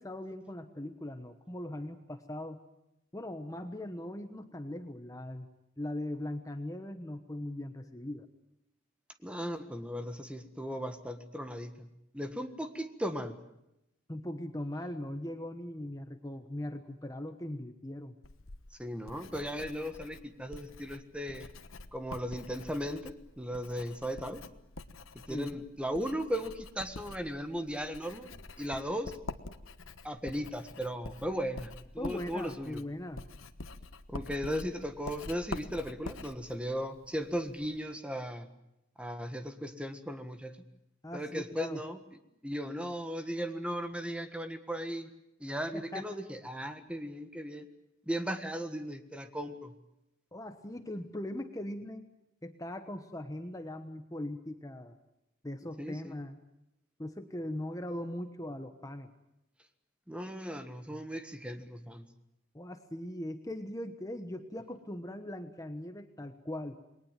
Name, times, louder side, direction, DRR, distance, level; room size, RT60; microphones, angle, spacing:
voice 1, 0.0-2.6 3.1-5.5 5.8-8.3 14.1-18.2 25.3-25.5 32.0-33.2 41.0-41.8 45.7-46.1 50.3-52.1 52.4-55.0 55.4-56.4 57.0-59.1 62.5-66.8, left 1 dB, 15° left, 7 dB, 1.2 m, -40 dB
voice 2, 9.2-13.4 18.8-21.5 21.9-24.4 25.1-29.1 30.0-32.8 34.1-38.5 39.0-40.6 41.1-42.0 42.4-45.1 45.4-47.7 48.1-49.7 55.8-56.1 60.1-62.1, equal, 5° right, 8 dB, 1.6 m, -37 dB
Writing, 18.2-37.8, left 2 dB, 80° left, 1.3 m, -47 dB
28.5 x 21.5 x 7.5 m, 0.86 s
head